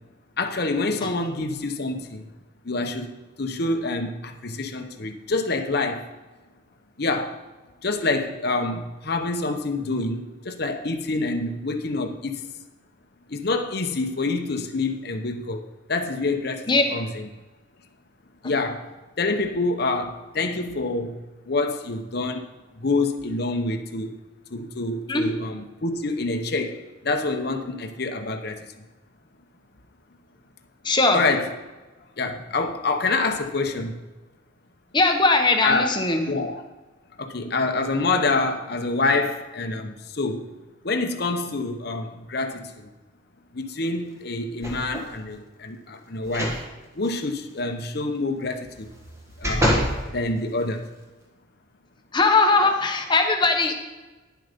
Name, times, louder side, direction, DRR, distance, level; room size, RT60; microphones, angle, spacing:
voice 1, 0.4-2.2 2.6-6.1 7.0-7.4 7.8-12.4 13.3-17.3 18.4-18.9 19.2-22.4 22.8-24.2 24.5-28.7 31.1-31.5 32.2-34.0 35.6-36.0 36.3-36.6 37.2-40.5 40.8-42.9 43.5-46.6 46.9-48.9 49.4-49.7 50.1-50.8, left 3 dB, 50° left, 5 dB, 0.9 m, -27 dB
voice 2, 30.8-31.2 34.9-36.2 52.1-53.7, left 3 dB, 25° left, 4 dB, 1.0 m, -19 dB
sound 1, 44.6-45.2 46.2-46.6 47.0-47.1 48.7-50.0 50.6-50.7, equal, 15° right, 1.7 m, -26 dB
10.5 x 7.8 x 5.2 m, 1.2 s
head